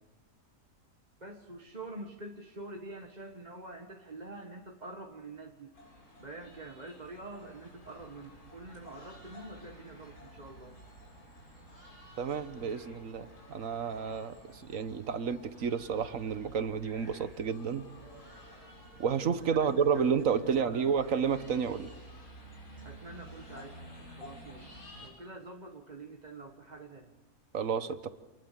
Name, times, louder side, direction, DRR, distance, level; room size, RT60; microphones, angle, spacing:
voice 1, 1.2-5.7 6.2-10.8 14.5-14.6 19.5-20.9 22.8-27.1, right 2 dB, 30° right, 3 dB, 1.6 m, -46 dB
sound 1, 5.7-25.1, equal, 70° left, 7.3 m, -52 dB
voice 2, 12.2-17.9 19.0-21.9 27.5-28.1, right 6 dB, 65° right, 13 dB, 1.5 m, -31 dB
27.5 x 20.5 x 7.5 m, 1.1 s
omnidirectional pair, 1.5 m